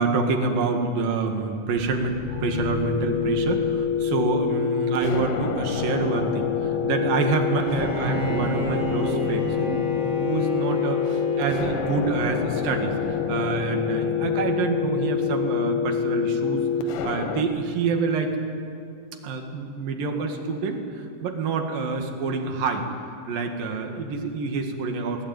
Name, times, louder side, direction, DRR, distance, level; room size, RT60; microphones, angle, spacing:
voice 1, 0.0-18.4 19.2-22.9 23.3-25.2, right 4 dB, 85° right, 4 dB, 3.6 m, -27 dB
sound 1, 1.8-17.4, left 7 dB, 85° left, 2.8 m, -27 dB
Bowed string instrument, 7.5-13.1, equal, 30° left, 3.9 m, -32 dB
21.5 x 19.0 x 9.1 m, 2.5 s
omnidirectional pair, 3.9 m